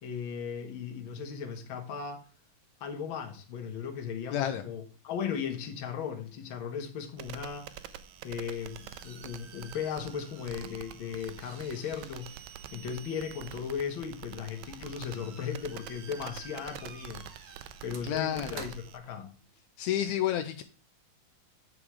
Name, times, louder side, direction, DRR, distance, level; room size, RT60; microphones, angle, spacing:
voice 1, 0.0-2.2 2.8-8.0 8.2-12.4 12.7-17.5 17.8-19.3, left 7 dB, 50° left, 1.8 m, -37 dB
voice 2, 4.3-4.6 18.0-18.7 19.8-20.6, left 11 dB, 80° left, 1.8 m, -30 dB
sound 1, 7.2-19.0, right 10 dB, 75° right, 1.8 m, -47 dB
sound 2, 8.2-19.6, right 5 dB, 55° right, 1.0 m, -52 dB
8.9 x 4.9 x 4.8 m
omnidirectional pair, 3.4 m